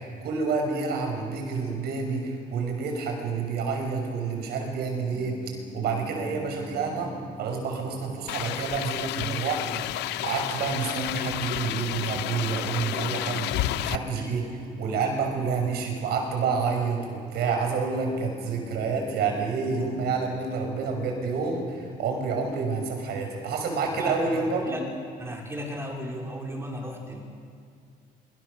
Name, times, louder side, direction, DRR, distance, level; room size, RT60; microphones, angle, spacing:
voice 1, 0.0-7.1 7.4-9.7 10.2-24.8, right 5 dB, 75° right, 3 dB, 6.3 m, -29 dB
Piano, 5.1-24.5, equal, 40° right, 7.4 m, -44 dB
sound 1, 8.3-14.0, left 15 dB, 85° left, 0.7 m, -31 dB
voice 2, 24.0-24.8 25.2-27.2, equal, 15° right, -1 dB, 5.7 m, -35 dB
25.0 x 24.5 x 7.0 m, 2.3 s
cardioid pair, 110°, 17 cm